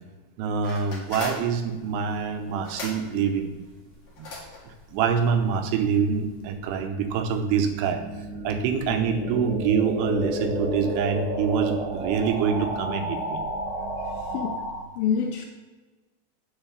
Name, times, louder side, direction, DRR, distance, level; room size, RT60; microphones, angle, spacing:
voice 1, 0.4-3.5 4.2-4.3 4.9-8.0 8.4-13.4, right 6 dB, 80° right, 7 dB, 2.8 m, -25 dB
sound 1, 0.6-6.5, left 2 dB, 40° left, 2.5 m, -41 dB
sound 2, 6.3-14.8, equal, 5° right, 0.4 m, -32 dB
voice 2, 14.2-14.6 15.0-15.5, left 7 dB, 90° left, 3 dB, 2.1 m, -26 dB
8.9 x 4.5 x 7.0 m, 1.3 s
omnidirectional pair, 4.9 m